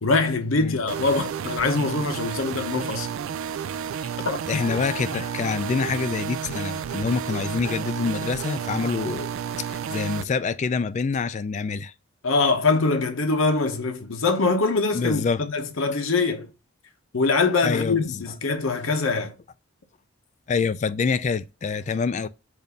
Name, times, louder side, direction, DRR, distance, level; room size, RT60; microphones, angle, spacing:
voice 1, 0.0-3.1 4.2-4.6 12.2-16.5 17.1-19.3, left 3 dB, 75° left, 0.9 m, -23 dB
sound 1, 0.9-10.2, right 7 dB, 75° right, 0.3 m, -31 dB
voice 2, 4.5-11.9 14.9-15.4 17.6-18.2 20.5-22.3, left 5 dB, 35° left, 0.3 m, -26 dB
7.1 x 2.6 x 5.2 m
head